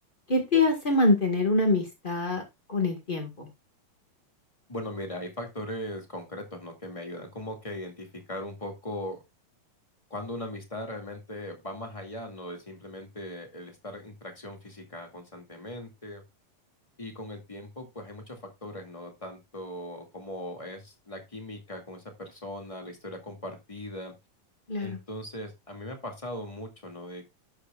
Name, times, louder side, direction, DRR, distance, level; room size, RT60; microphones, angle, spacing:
voice 1, 0.3-2.4 2.7-3.5 24.7-25.0, left 2 dB, 45° left, 3 dB, 0.6 m, -25 dB
voice 2, 4.7-9.2 10.1-16.2 17.0-24.1 24.8-27.2, left 1 dB, 15° left, 3 dB, 1.6 m, -39 dB
12.0 x 8.5 x 2.4 m, 0.22 s
omnidirectional pair, 3.9 m